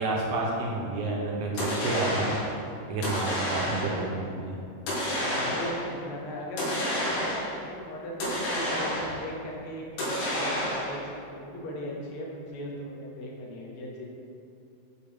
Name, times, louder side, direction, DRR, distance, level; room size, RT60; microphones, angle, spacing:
voice 1, 0.0-2.3 2.9-4.6, right 2 dB, 75° right, -2 dB, 1.6 m, -30 dB
sound 1, 1.6-2.5 3.0-4.1 4.9-5.9 6.6-7.6 8.2-9.3 10.0-11.1, equal, 85° left, 2.7 m, -30 dB
voice 2, 5.1-11.0 11.3-14.1, equal, 65° left, -2 dB, 1.4 m, -38 dB
7.2 x 4.3 x 3.5 m, 2.6 s
omnidirectional pair, 3.4 m